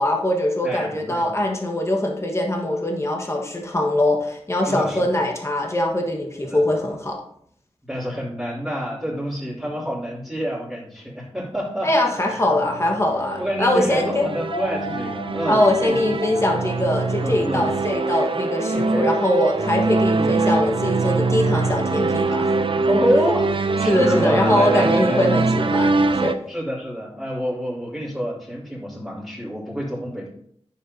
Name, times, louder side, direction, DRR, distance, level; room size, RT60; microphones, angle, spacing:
voice 1, 0.0-7.2 11.8-14.2 15.5-22.5 23.9-26.4, left 1 dB, 25° left, 1 dB, 1.4 m, -22 dB
voice 2, 0.6-1.3 4.6-5.0 6.5-6.6 7.9-11.9 12.2-12.4 13.4-16.1 17.2-17.6 18.7-19.0 20.1-20.3 22.9-25.3 26.5-30.3, equal, 5° right, -11 dB, 3.0 m, -27 dB
sound 1, 12.5-26.3, right 3 dB, 55° right, 0.5 m, -23 dB
sound 2, 14.0-21.8, left 1 dB, 75° left, 1.8 m, -38 dB
9.7 x 7.0 x 2.7 m, 0.67 s
wide cardioid pair, 70°, 11 cm